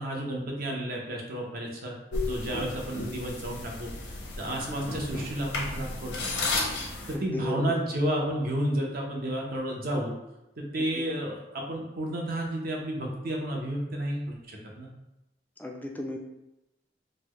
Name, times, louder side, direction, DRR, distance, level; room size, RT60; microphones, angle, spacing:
voice 1, 0.0-1.9 2.3-6.3 7.1-10.1 10.6-14.9, right 1 dB, 55° right, 0 dB, 0.7 m, -31 dB
sound 1, 2.1-7.1, left 2 dB, 85° left, 0.8 m, -33 dB
voice 2, 4.7-5.1 7.1-7.8 10.9-11.0 15.6-16.2, left 2 dB, 10° left, 2 dB, 0.4 m, -35 dB
4.1 x 2.1 x 3.0 m, 0.92 s
head